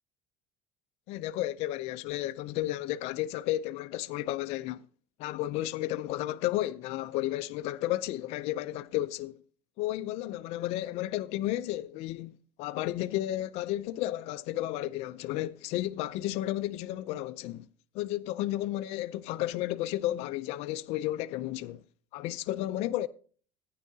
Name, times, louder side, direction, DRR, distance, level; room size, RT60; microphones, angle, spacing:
voice 1, 1.1-4.8 5.2-9.4 9.8-12.3 12.6-17.6 17.9-21.8 22.1-23.1, left 15 dB, 50° left, 0.4 m, -32 dB
14.5 x 9.4 x 2.7 m
cardioid pair, 170°, 14 cm